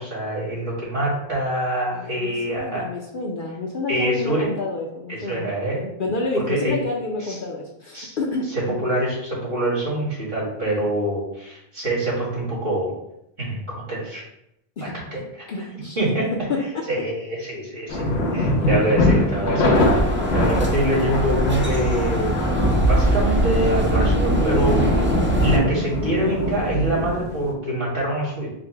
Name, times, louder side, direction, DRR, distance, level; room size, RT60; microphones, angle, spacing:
voice 1, 0.0-2.9 3.9-4.5 5.1-5.9 6.3-6.8 7.2-7.4 7.9-8.2 8.5-12.9 13.4-13.6 13.9-14.2 14.8-15.4 16.0-16.3 16.9-19.8 20.3-25.1 25.4-28.5, right 1 dB, 65° right, -6 dB, 2.2 m, -25 dB
voice 2, 1.9-5.5 6.0-8.5 14.8-14.9 15.5-16.1 16.5-16.8 18.6-18.9, left 2 dB, 60° left, -1 dB, 0.7 m, -29 dB
sound 1, 17.9-27.5, left 1 dB, 85° left, 1.1 m, -23 dB
sound 2, 19.7-25.6, right 1 dB, 15° right, 0.4 m, -22 dB
5.1 x 2.1 x 4.5 m, 0.81 s
omnidirectional pair, 1.1 m